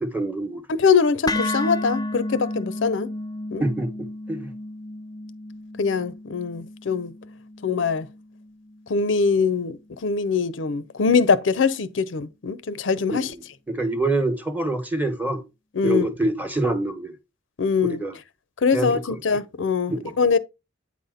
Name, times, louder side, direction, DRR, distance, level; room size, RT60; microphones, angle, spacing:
voice 1, 0.0-0.6 3.6-4.5 13.1-13.3 13.7-15.4 15.8-17.1 17.9-18.1 18.7-19.0 20.0-20.1, right 2 dB, 10° right, 1.0 m, -26 dB
voice 2, 0.7-3.1 3.5-3.6 5.8-7.1 7.6-8.1 8.9-13.3 15.7-16.1 17.6-18.0 18.6-20.4, left 5 dB, 75° left, 0.6 m, -22 dB
sound 1, 1.3-9.4, left 2 dB, 20° left, 0.3 m, -33 dB
8.5 x 4.2 x 3.7 m
head